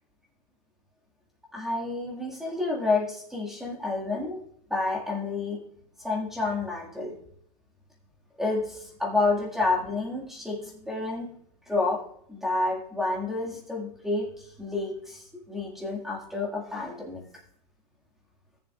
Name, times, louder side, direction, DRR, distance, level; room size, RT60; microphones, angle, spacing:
voice 1, 1.5-4.4 4.7-5.6 6.0-7.1 8.4-11.3 11.7-12.0 12.3-17.2, left 3 dB, ahead, -3 dB, 1.9 m, -29 dB
16.5 x 7.1 x 2.4 m, 0.68 s
supercardioid pair, 145°, 21 cm